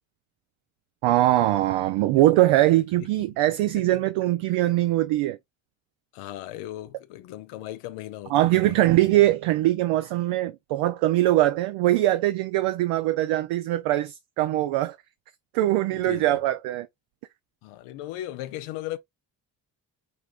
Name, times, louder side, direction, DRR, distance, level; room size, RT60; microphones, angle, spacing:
voice 1, 1.0-5.4 8.3-15.0 15.5-16.9, right 15 dB, 80° right, 0.6 m, -22 dB
voice 2, 6.1-8.8 15.9-16.3 17.6-19.0, left 14 dB, 85° left, 0.7 m, -37 dB
5.5 x 3.2 x 2.3 m
supercardioid pair, 50°, 50 cm